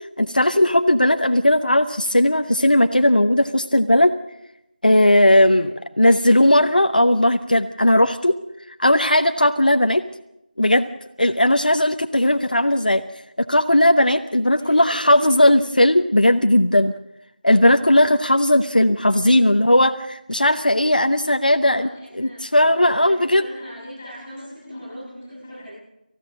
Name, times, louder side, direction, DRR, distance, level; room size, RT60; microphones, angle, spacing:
voice 1, 0.2-4.1 4.8-8.4 8.8-10.0 10.6-10.9 11.2-13.0 13.4-16.9 17.4-21.9 22.2-23.4, left 1 dB, 60° left, 7 dB, 1.0 m, -17 dB
voice 2, 14.3-15.4 21.5-25.7, equal, 5° left, -6 dB, 7.1 m, -40 dB
28.0 x 15.5 x 6.4 m, 0.88 s
figure-of-eight pair, 175°, 5 cm